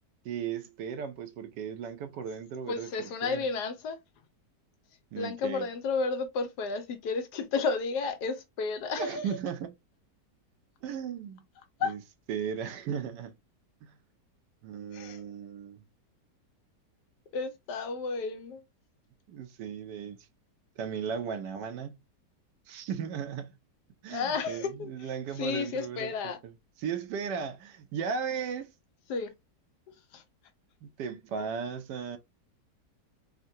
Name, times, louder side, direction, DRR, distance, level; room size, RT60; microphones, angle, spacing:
voice 1, 0.2-3.5 5.1-5.7 9.0-9.7 10.8-11.4 11.8-12.0 12.3-13.3 13.8-13.9 14.6-15.8 19.3-20.2 20.8-22.0 22.7-23.5 24.0-26.1 26.8-28.7 30.8-32.2, right 7 dB, 80° right, 1.2 m, -36 dB
voice 2, 2.7-4.0 5.2-9.3 11.8-11.9 14.9-15.2 17.3-18.6 24.1-25.1 25.4-26.4 29.1-29.3 30.1-30.2, left 4 dB, 75° left, 1.2 m, -32 dB
3.6 x 2.2 x 2.6 m
omnidirectional pair, 1.9 m